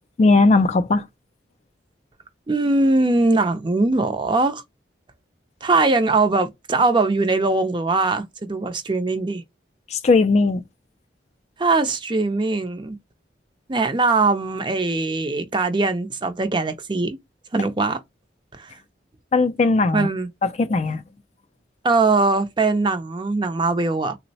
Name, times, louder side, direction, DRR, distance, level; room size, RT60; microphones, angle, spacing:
voice 1, 0.2-1.0 9.9-10.6 19.3-20.1 20.4-21.0, left 3 dB, 35° left, 0.3 m, -18 dB
voice 2, 2.5-4.6 5.6-9.4 11.6-13.0 13.7-17.2 17.5-18.0 18.6-18.7 19.9-20.3 21.8-24.2, right 3 dB, 25° right, 0.5 m, -21 dB
3.8 x 2.0 x 2.7 m
head